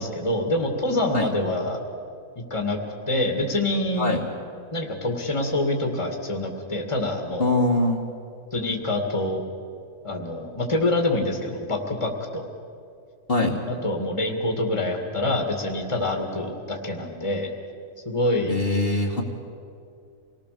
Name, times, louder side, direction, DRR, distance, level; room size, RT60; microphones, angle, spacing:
voice 1, 0.0-1.8 2.5-2.8 3.1-4.2 4.7-7.5 8.5-9.4 10.0-12.5 13.7-17.5 18.1-18.6, left 1 dB, 20° left, 2 dB, 2.2 m, -26 dB
voice 2, 7.4-8.0 13.3-13.6 18.5-19.2, left 2 dB, 40° left, -2 dB, 2.1 m, -22 dB
27.0 x 19.5 x 6.8 m, 2.4 s
omnidirectional pair, 1.5 m